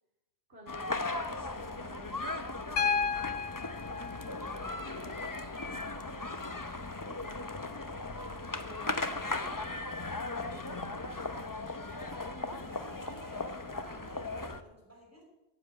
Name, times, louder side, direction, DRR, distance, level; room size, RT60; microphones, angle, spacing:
voice 1, 0.5-3.7 4.1-7.5 8.2-14.0, right 1 dB, 65° right, -4 dB, 3.7 m, -54 dB
sound 1, 0.7-14.6, left 2 dB, 20° left, 0.7 m, -37 dB
Piano, 2.8-6.8 8.3-8.4, left 6 dB, 60° left, 1.0 m, -35 dB
voice 2, 4.6-5.3 13.0-15.2, equal, 15° right, -2 dB, 5.3 m, -54 dB
14.5 x 7.9 x 8.9 m, 1.0 s
omnidirectional pair, 1.2 m